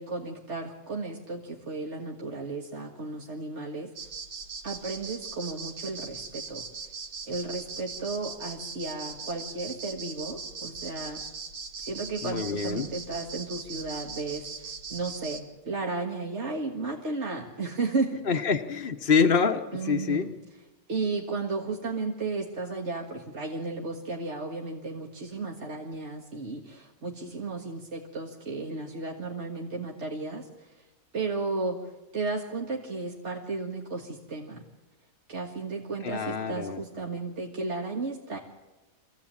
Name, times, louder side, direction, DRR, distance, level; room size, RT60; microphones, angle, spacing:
voice 1, 0.0-3.9 4.6-6.6 7.3-11.2 11.8-18.4 19.7-20.3 20.9-30.8 31.1-34.6 35.3-38.4, right 3 dB, 55° right, 0 dB, 2.0 m, -34 dB
sound 1, 4.0-15.4, right 5 dB, 90° right, 2.0 m, -40 dB
voice 2, 12.2-12.9 18.3-20.3 36.0-36.8, left 5 dB, 45° left, 3 dB, 1.1 m, -26 dB
25.0 x 16.0 x 8.9 m, 1.1 s
omnidirectional pair, 1.5 m